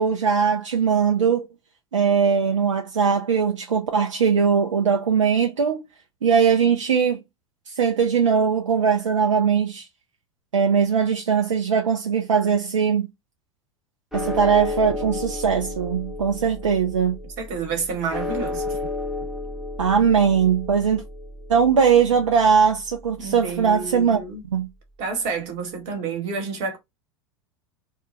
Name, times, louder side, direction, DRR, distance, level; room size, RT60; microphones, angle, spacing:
voice 1, 0.0-1.5 1.9-5.8 6.2-7.2 7.8-9.9 10.5-13.1 14.1-17.2 19.8-21.0 21.5-24.7, right 6 dB, 80° right, 0.5 m, -20 dB
sound 1, 14.1-24.5, left 2 dB, 5° right, 0.8 m, -33 dB
voice 2, 17.4-18.8 23.2-24.4 25.0-26.8, right 5 dB, 50° right, 1.2 m, -29 dB
2.2 x 2.2 x 3.0 m
figure-of-eight pair, 85°, 16 cm